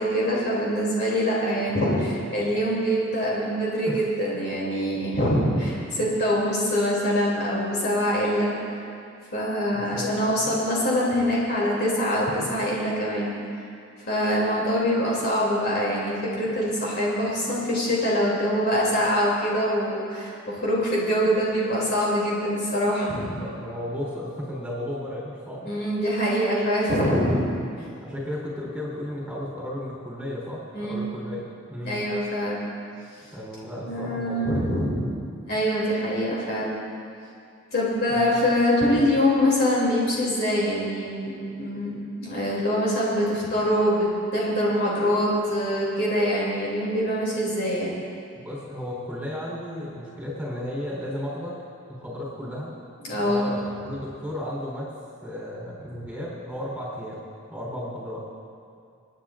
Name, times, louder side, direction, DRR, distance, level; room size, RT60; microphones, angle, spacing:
voice 1, 0.0-1.9 2.3-8.5 9.3-13.3 14.1-23.3 25.6-27.4 30.7-31.0 31.8-32.6 33.8-35.1 35.5-36.8 37.7-41.3 41.6-47.9 53.0-53.5, equal, 50° left, -5 dB, 3.0 m, -24 dB
voice 2, 1.9-2.2 3.9-4.0 9.7-10.6 23.4-25.8 27.2-27.4 28.0-32.0 33.3-34.7 38.1-38.4 48.4-51.5 51.9-52.7 53.1-54.9 55.2-58.2, left 1 dB, 5° right, -6 dB, 3.9 m, -34 dB
29.0 x 10.0 x 2.6 m, 2.4 s
head